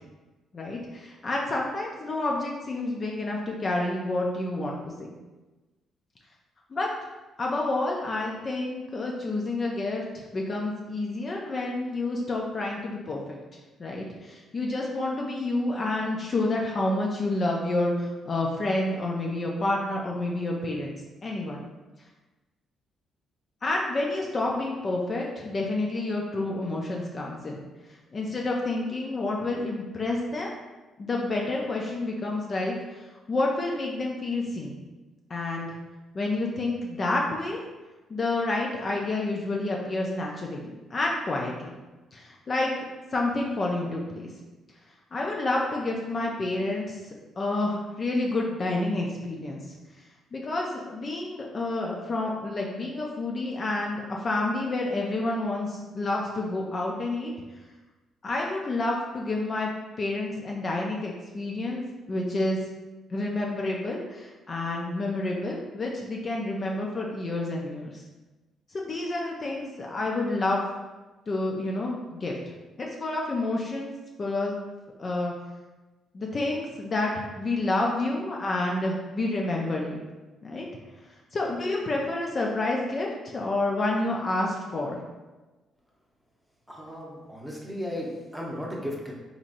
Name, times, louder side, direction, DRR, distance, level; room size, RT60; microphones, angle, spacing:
voice 1, 0.5-4.9 6.7-6.9 7.4-13.4 13.8-20.9 21.2-21.7 23.6-27.6 28.1-30.5 31.0-33.0 33.3-34.7 35.3-35.7 36.1-37.6 38.1-40.6 40.9-41.8 42.1-44.3 45.1-47.0 47.4-49.6 50.3-57.3 58.2-59.7 60.0-61.8 62.1-62.6 63.1-68.0 68.7-70.6 71.3-72.4 72.8-74.6 75.0-75.3 76.1-80.0 80.4-80.7 81.3-85.0, left 2 dB, 40° left, -1 dB, 0.5 m, -29 dB
voice 2, 86.7-89.1, equal, 5° right, -3 dB, 0.8 m, -35 dB
3.9 x 2.9 x 2.5 m, 1.2 s
cardioid pair, 90°, 0 cm